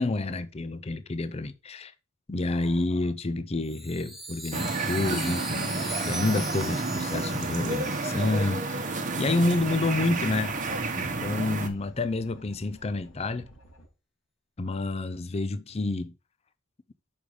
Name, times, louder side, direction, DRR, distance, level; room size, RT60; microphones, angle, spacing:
voice 1, 0.0-1.9 2.3-8.9 9.2-10.6 11.0-13.5 14.6-16.1, left 2 dB, 30° left, 0.5 m, -29 dB
Chime, 3.6-9.2, right 1 dB, ahead, 1.2 m, -40 dB
sound 1, 4.5-11.7, right 3 dB, 35° right, 1.0 m, -30 dB
sound 2, 9.5-13.9, right 1 dB, 80° left, 3.3 m, -53 dB
6.5 x 5.3 x 4.9 m
head